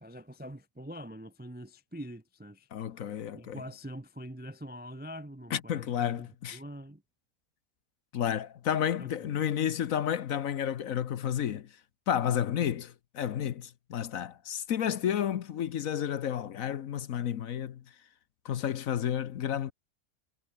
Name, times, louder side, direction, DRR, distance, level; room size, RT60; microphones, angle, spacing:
voice 1, 0.0-2.7 3.3-7.0 9.0-9.5, equal, 10° right, 0.5 m, -44 dB
voice 2, 2.7-3.6 5.5-6.6 8.1-11.7 12.1-17.8 18.4-19.7, left 9 dB, 60° left, 1.2 m, -31 dB
omnidirectional pair, 1.7 m